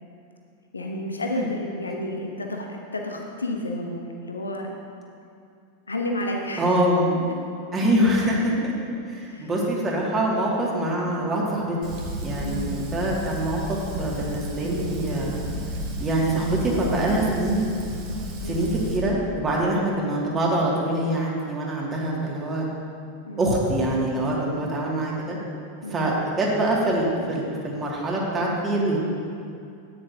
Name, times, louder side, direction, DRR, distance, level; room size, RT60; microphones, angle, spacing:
voice 1, 0.7-4.7 5.9-6.8 9.3-9.5 12.4-12.7 18.4-18.6 23.2-23.5 25.8-26.1, left 1 dB, 75° left, 1 dB, 0.9 m, -31 dB
voice 2, 6.6-7.1 7.7-8.5 9.1-11.8 12.2-15.3 16.0-17.7 18.4-22.7 23.4-25.4 25.9-29.0, right 1 dB, 20° right, -3 dB, 2.2 m, -24 dB
Fire, 11.8-19.0, right 1 dB, 40° right, 1.5 m, -32 dB
13.0 x 9.7 x 2.8 m, 2.5 s
figure-of-eight pair, 90°, 0 cm